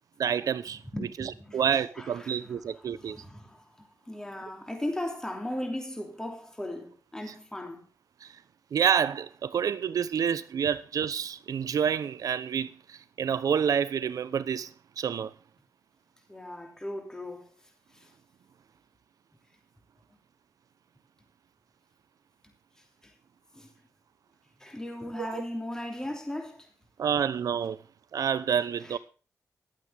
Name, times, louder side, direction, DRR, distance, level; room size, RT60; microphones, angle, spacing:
voice 1, 0.2-0.8 1.5-3.2 8.2-8.3 8.7-14.7 15.0-15.3 25.2-25.4 27.0-27.8 28.1-29.0, right 7 dB, 80° right, 1.0 m, -28 dB
voice 2, 0.9-7.9 16.3-17.5 17.9-18.1 23.0-23.1 23.5-23.7 24.6-26.7 28.8-29.0, left 1 dB, 10° left, 3.1 m, -38 dB
15.0 x 12.0 x 3.6 m
wide cardioid pair, 150°, 6 cm